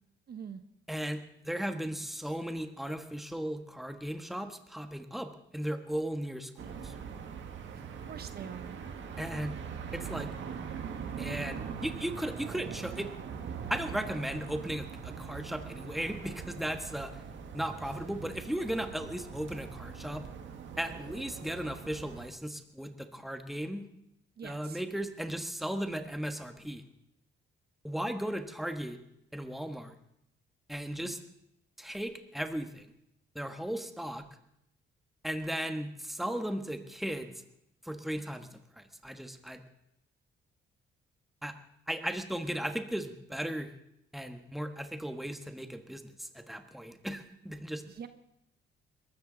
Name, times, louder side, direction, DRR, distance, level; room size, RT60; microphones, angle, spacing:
voice 1, 0.3-0.6 7.7-8.8 24.4-24.8 47.9-48.1, right 7 dB, 55° right, 9 dB, 1.2 m, -44 dB
voice 2, 0.9-7.0 9.2-9.6 9.9-10.3 11.2-13.1 13.7-17.2 17.5-20.3 20.8-23.9 24.4-26.8 27.8-29.0 29.3-29.9 30.7-31.2 31.8-32.9 33.3-34.3 35.2-37.3 37.8-39.6 41.4-41.6 41.9-43.7 44.1-47.8, right 1 dB, ahead, 7 dB, 1.4 m, -36 dB
sound 1, 6.6-22.3, right 7 dB, 70° right, 1.9 m, -42 dB
22.0 x 13.5 x 4.0 m, 0.78 s
cardioid pair, 90°, 20 cm